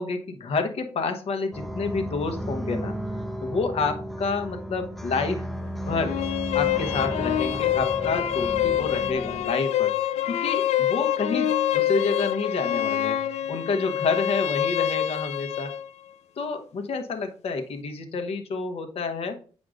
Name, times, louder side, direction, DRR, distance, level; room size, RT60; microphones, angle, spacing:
voice 1, 0.0-2.9 3.4-5.5 5.9-6.2 6.5-9.9 10.3-13.2 13.5-15.7 16.4-19.4, left 4 dB, 65° left, 6 dB, 1.0 m, -29 dB
sound 1, 1.5-9.5, equal, ahead, 0.6 m, -34 dB
sound 2, 5.9-15.9, left 11 dB, 90° left, 0.4 m, -26 dB
8.0 x 6.2 x 2.5 m, 0.40 s
cardioid pair, 100°, 11 cm